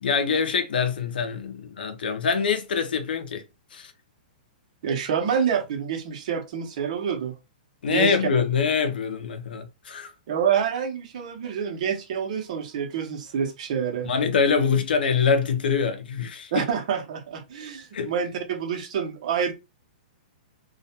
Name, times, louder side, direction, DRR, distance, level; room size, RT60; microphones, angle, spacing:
voice 1, 0.0-3.4 3.7-3.9 7.8-10.1 14.0-16.6 17.9-18.1, left 6 dB, 80° left, 0.6 m, -24 dB
voice 2, 4.8-7.4 7.9-8.3 10.3-14.1 16.5-19.5, right 7 dB, 50° right, 0.7 m, -27 dB
2.3 x 2.1 x 2.8 m
hypercardioid pair, 160°, 5 cm